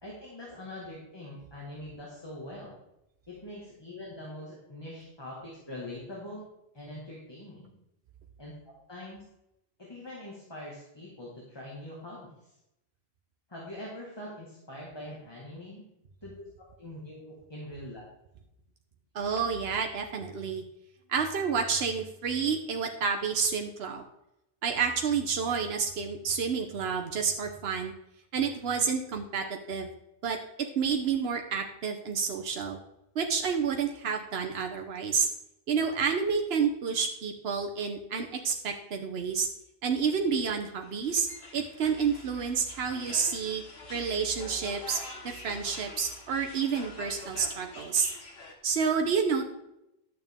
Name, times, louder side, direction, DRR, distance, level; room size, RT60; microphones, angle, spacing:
voice 1, 0.0-2.7 3.3-6.5 6.7-7.7 8.4-9.2 9.8-12.3 13.5-15.8 16.2-16.5 16.8-18.0, left 1 dB, 25° left, -4 dB, 1.9 m, -43 dB
voice 2, 19.1-20.6 21.1-24.0 24.6-27.9 28.3-29.9 30.2-30.4 30.8-32.8 33.1-35.3 35.7-39.5 39.8-41.3 41.5-43.6 43.9-45.0 45.2-48.1 48.6-49.4, right 6 dB, 75° right, 3 dB, 1.1 m, -29 dB
sound 1, 40.8-48.5, left 2 dB, 75° left, 1.7 m, -46 dB
11.0 x 7.3 x 3.6 m, 0.85 s
omnidirectional pair, 1.0 m